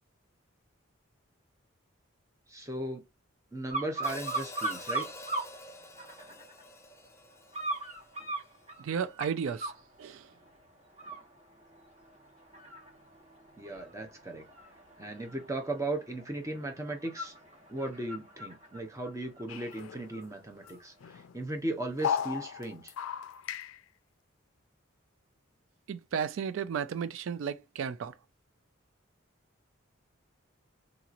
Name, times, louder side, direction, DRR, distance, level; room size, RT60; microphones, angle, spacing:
voice 1, 2.5-3.0 3.5-5.1 13.6-14.4 15.0-17.3 17.7-22.9, right 2 dB, 15° right, 0.8 m, -37 dB
sound 1, 3.7-5.5 6.0-6.6 7.5-9.8 10.3-10.6 10.9-20.2 20.6-20.8, right 2 dB, 35° right, 1.3 m, -39 dB
Hi-hat, 4.0-8.3, left 2 dB, 15° left, 0.4 m, -47 dB
voice 2, 8.8-9.7 10.0-10.3 25.9-28.1, right 7 dB, 75° right, 0.3 m, -34 dB
sound 2, 19.5-20.4 20.7-20.8 21.0-21.5 22.0-23.8, left 8 dB, 85° left, 0.4 m, -35 dB
3.9 x 2.9 x 2.5 m
head